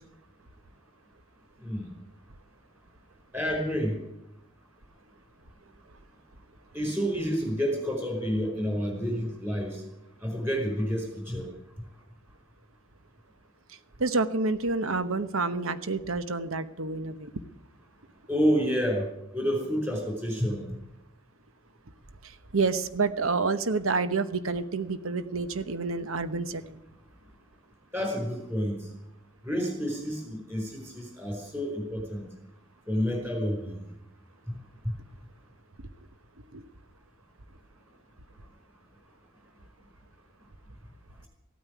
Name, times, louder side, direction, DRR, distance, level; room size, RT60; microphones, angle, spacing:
voice 1, 3.3-4.0 6.7-9.8 10.2-11.5 18.3-19.1 19.3-20.7 27.9-28.8 29.4-32.3 32.9-33.7 34.8-34.9, equal, 10° right, 2 dB, 4.6 m, -29 dB
voice 2, 13.7-17.3 22.2-26.8 36.5-36.6, right 3 dB, 75° right, 12 dB, 1.0 m, -29 dB
15.5 x 9.5 x 9.3 m, 0.84 s
head